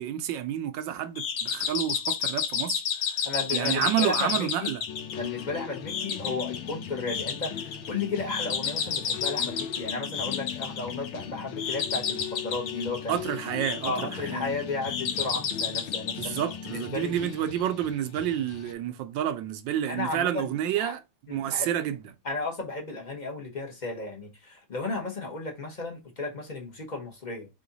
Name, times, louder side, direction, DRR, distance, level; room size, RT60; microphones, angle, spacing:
voice 1, 0.0-2.8 3.5-4.8 13.1-14.4 16.2-21.0 21.3-22.0, right 10 dB, 75° right, 1.2 m, -29 dB
sound 1, 1.2-17.3, left 7 dB, 65° left, 1.3 m, -32 dB
voice 2, 3.2-4.7 5.1-13.2 13.8-16.4 16.7-17.3 19.9-20.9 21.3-21.7 22.2-27.5, left 3 dB, 30° left, 0.9 m, -34 dB
sound 2, 4.9-18.7, left 9 dB, 85° left, 1.5 m, -39 dB
3.8 x 3.5 x 3.9 m
omnidirectional pair, 2.2 m